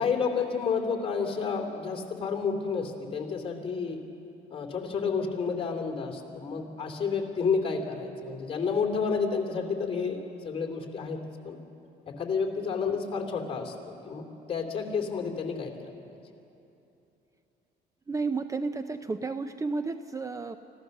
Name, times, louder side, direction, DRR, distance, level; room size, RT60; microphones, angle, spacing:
voice 1, 0.0-4.0 4.5-10.2 10.4-11.6 12.1-16.0, left 5 dB, 35° left, 3 dB, 3.0 m, -30 dB
voice 2, 18.1-20.6, right 4 dB, 20° right, 10 dB, 0.6 m, -32 dB
25.5 x 15.5 x 6.6 m, 2.8 s
cardioid pair, 110°, 17 cm